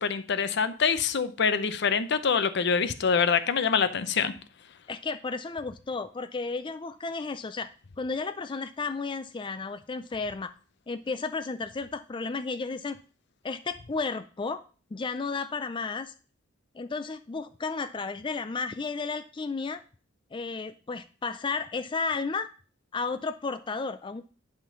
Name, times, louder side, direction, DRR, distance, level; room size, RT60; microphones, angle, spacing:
voice 1, 0.0-4.3, left 6 dB, 60° left, 12 dB, 0.7 m, -25 dB
voice 2, 4.9-7.7 8.0-10.5 10.9-13.0 13.4-14.6 14.9-16.1 16.7-19.8 20.3-22.5 22.9-24.3, left 4 dB, 25° left, 10 dB, 0.4 m, -33 dB
10.5 x 3.8 x 5.8 m, 0.37 s
head